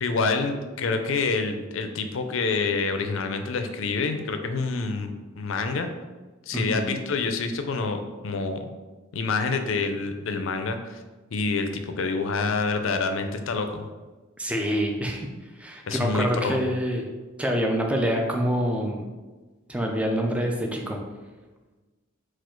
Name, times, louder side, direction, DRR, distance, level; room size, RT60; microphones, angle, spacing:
voice 1, 0.0-5.9 6.5-8.6 9.1-11.0 11.3-13.9 15.9-16.7, left 4 dB, 65° left, 7 dB, 0.4 m, -27 dB
voice 2, 6.5-6.9 14.4-15.3 15.6-19.1 19.7-21.0, equal, 5° right, 1 dB, 0.4 m, -26 dB
4.2 x 2.4 x 4.4 m, 1.3 s
head